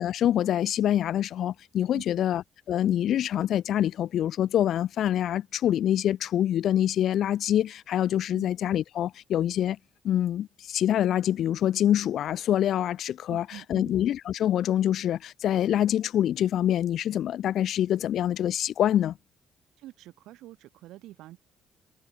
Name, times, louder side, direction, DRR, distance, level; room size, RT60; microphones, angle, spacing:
voice 1, 0.0-2.4 2.7-9.8 10.0-19.1, left 11 dB, 75° left, 1.1 m, -25 dB
voice 2, 1.9-2.2 8.3-8.5 13.3-13.9 19.8-21.4, right 15 dB, 85° right, 7.3 m, -46 dB
cardioid pair, 70°, 0 cm